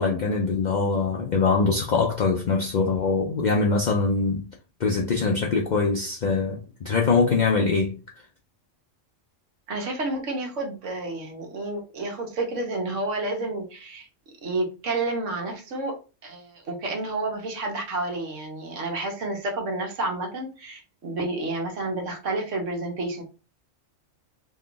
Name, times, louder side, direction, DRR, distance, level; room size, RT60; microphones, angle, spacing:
voice 1, 0.0-4.5 4.8-8.0, left 4 dB, 65° left, 0.4 m, -23 dB
voice 2, 9.7-14.1 14.4-23.2, right 2 dB, 75° right, 1.3 m, -30 dB
3.1 x 2.3 x 3.7 m
omnidirectional pair, 1.3 m